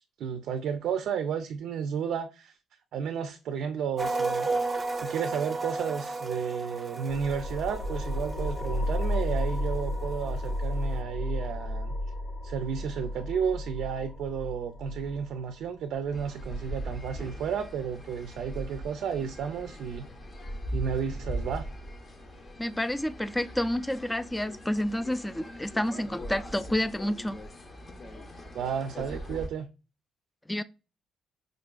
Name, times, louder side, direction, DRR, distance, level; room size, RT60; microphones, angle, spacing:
voice 1, 0.2-2.5 2.9-4.5 4.9-12.0 12.4-20.0 20.7-21.7 28.5-29.7, right 7 dB, 75° right, 0.4 m, -32 dB
sound 1, 4.0-10.0 10.3-10.5, right 3 dB, 30° right, 0.6 m, -33 dB
sound 2, 7.1-18.1, left 1 dB, 65° left, 1.1 m, -33 dB
sound 3, 16.1-29.5, equal, 40° left, 0.7 m, -40 dB
voice 2, 22.6-27.4 30.5-30.6, left 1 dB, 10° left, 0.3 m, -29 dB
4.9 x 2.4 x 2.2 m
cardioid pair, 90°, 0 cm